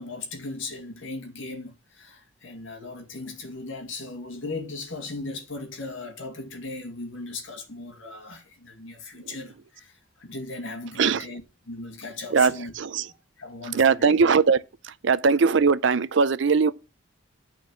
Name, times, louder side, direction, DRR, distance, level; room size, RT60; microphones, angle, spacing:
voice 1, 0.0-12.7 13.0-14.2, left 3 dB, 65° left, 2.2 m, -37 dB
voice 2, 12.3-13.0 13.7-14.6 14.8-16.7, right 5 dB, 60° right, 0.5 m, -20 dB
9.0 x 4.6 x 7.0 m
head